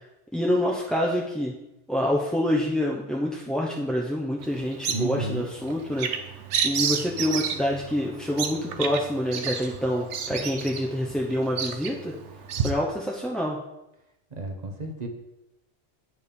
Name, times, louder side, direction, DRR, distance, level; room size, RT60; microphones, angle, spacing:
voice 1, 0.3-1.5 1.9-6.1 6.6-12.1 12.6-13.6, left 1 dB, ahead, -3 dB, 0.6 m, -26 dB
Bird vocalization bird call bird song, 4.4-12.7, right 7 dB, 80° right, 1.0 m, -31 dB
voice 2, 4.9-5.5 14.3-15.1, right 2 dB, 40° right, 3 dB, 1.0 m, -31 dB
8.3 x 4.9 x 5.3 m, 0.90 s
omnidirectional pair, 1.2 m